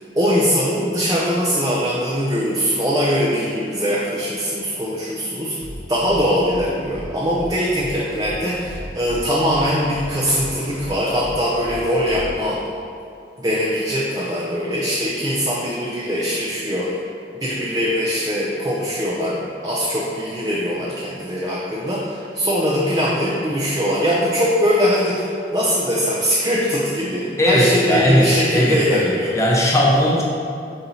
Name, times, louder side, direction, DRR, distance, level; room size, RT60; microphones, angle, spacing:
voice 1, 0.1-5.5 5.9-12.6 13.4-17.0 17.3-29.3, equal, 20° right, -6 dB, 0.5 m, -21 dB
sound 1, 5.6-5.7 6.0-6.2 6.5-6.6 6.9-7.0 7.3-7.5 7.8-7.9 8.2-8.3 8.6-9.2 9.5-9.6 9.9-10.0 10.3-10.5 10.8-10.9 11.2-11.3 11.6-11.7 12.0-12.3, right 1 dB, 75° right, 0.8 m, -36 dB
voice 2, 27.4-30.2, equal, 15° left, -4 dB, 0.8 m, -17 dB
5.3 x 4.3 x 4.1 m, 2.5 s
head